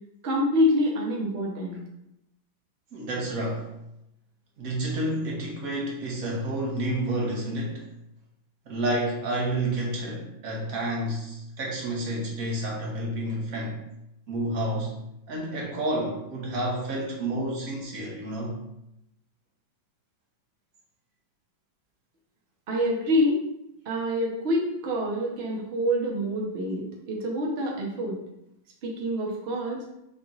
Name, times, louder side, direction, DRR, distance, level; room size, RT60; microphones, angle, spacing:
voice 1, 0.2-1.8 22.7-23.4 23.9-28.2 28.8-29.9, equal, 70° right, -2 dB, 0.6 m, -26 dB
voice 2, 2.9-3.7 4.6-7.8 8.7-13.8 14.3-15.0 15.3-18.6, right 1 dB, 55° right, -3 dB, 1.2 m, -30 dB
3.7 x 2.9 x 3.8 m, 0.83 s
omnidirectional pair, 2.1 m